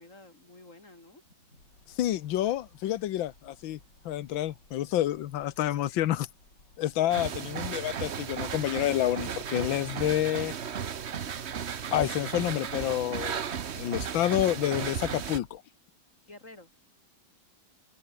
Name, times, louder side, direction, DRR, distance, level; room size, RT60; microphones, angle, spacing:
voice 1, 0.0-1.6 16.3-16.7, left 2 dB, 35° left, 6.7 m, -51 dB
sound 1, 1.6-15.6, left 2 dB, 60° left, 6.9 m, -60 dB
voice 2, 1.9-3.8 4.0-6.3 6.8-10.5 11.9-13.4 13.8-15.6, left 13 dB, 75° left, 1.6 m, -29 dB
sound 2, 7.1-15.4, right 7 dB, 45° right, 0.9 m, -35 dB
omnidirectional pair, 2.2 m